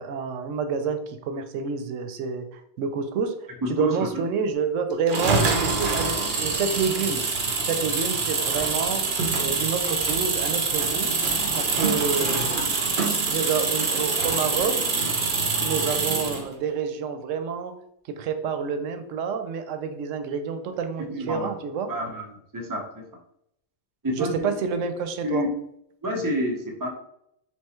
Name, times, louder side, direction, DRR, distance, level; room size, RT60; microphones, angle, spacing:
voice 1, 0.0-7.2 7.7-9.0 9.4-11.1 11.5-12.7 13.3-14.9 15.6-17.7 18.1-21.9 24.1-25.4, right 5 dB, 90° right, 8 dB, 0.9 m, -28 dB
voice 2, 3.6-4.3 21.0-21.5 21.9-22.3 22.5-23.0 24.0-24.5 25.2-25.5 26.0-26.9, equal, 20° right, 0 dB, 0.7 m, -28 dB
sound 1, 5.1-16.5, right 4 dB, 50° right, 0.8 m, -25 dB
3.6 x 2.9 x 4.3 m, 0.75 s
omnidirectional pair, 1.3 m